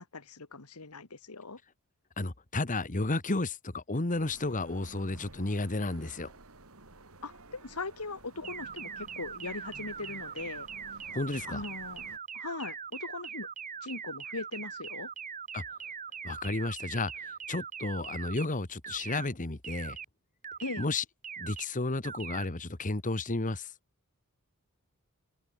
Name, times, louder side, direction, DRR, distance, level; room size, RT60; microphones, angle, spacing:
voice 1, 0.0-1.6 7.2-10.7 11.5-12.0 12.3-13.5 13.8-15.1 20.6-20.8, left 3 dB, 90° left, 1.9 m, -40 dB
voice 2, 2.2-6.3 11.1-11.6 15.5-15.6 16.2-20.0 20.8-21.0 21.4-23.7, left 2 dB, 35° left, 1.5 m, -32 dB
sound 1, 4.1-12.2, right 2 dB, 70° right, 3.0 m, -53 dB
sound 2, 8.4-18.5 18.8-19.3 19.6-20.1 20.4-20.9 21.2-21.7 22.0-22.5, right 7 dB, 35° right, 3.0 m, -41 dB
open air
head